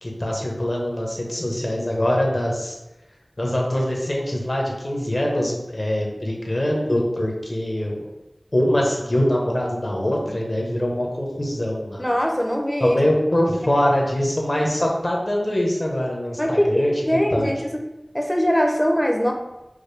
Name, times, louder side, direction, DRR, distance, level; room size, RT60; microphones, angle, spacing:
voice 1, 0.0-2.8 3.4-8.1 8.5-12.0 12.8-16.9 17.3-17.5, left 1 dB, 50° left, -1 dB, 0.9 m, -23 dB
voice 2, 12.0-13.0 16.4-17.8 18.1-19.3, equal, 10° left, 2 dB, 0.6 m, -21 dB
4.9 x 2.1 x 3.2 m, 0.95 s
wide cardioid pair, 50°, 0 cm